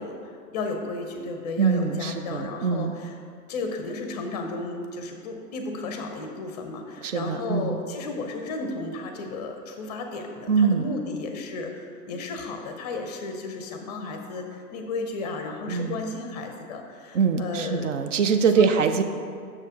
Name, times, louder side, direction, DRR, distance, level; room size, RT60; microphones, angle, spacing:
voice 1, 0.0-3.1 3.5-18.0 18.6-18.8, left 3 dB, 25° left, 4 dB, 0.6 m, -33 dB
voice 2, 1.6-2.9 7.0-7.8 10.5-10.8 15.7-16.0 17.1-19.0, right 6 dB, 50° right, 8 dB, 0.6 m, -23 dB
6.5 x 6.4 x 3.6 m, 2.3 s
figure-of-eight pair, 120°, 50 cm